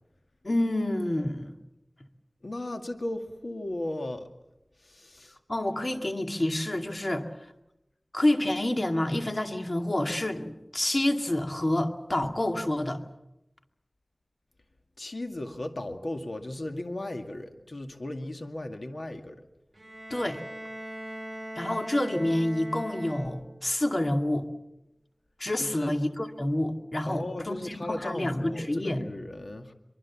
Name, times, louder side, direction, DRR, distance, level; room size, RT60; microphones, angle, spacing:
voice 1, 0.4-1.5 5.5-7.2 8.1-13.0 20.1-20.4 21.6-24.5 25.4-29.0, left 1 dB, 45° left, 5 dB, 2.3 m, -28 dB
voice 2, 2.4-4.3 4.8-5.4 15.0-19.4 25.6-25.9 27.1-29.7, left 1 dB, 70° left, 5 dB, 2.1 m, -36 dB
Bowed string instrument, 19.7-23.7, right 1 dB, 30° right, 7.1 m, -41 dB
24.0 x 23.5 x 7.3 m, 0.89 s
wide cardioid pair, 55°, 0 cm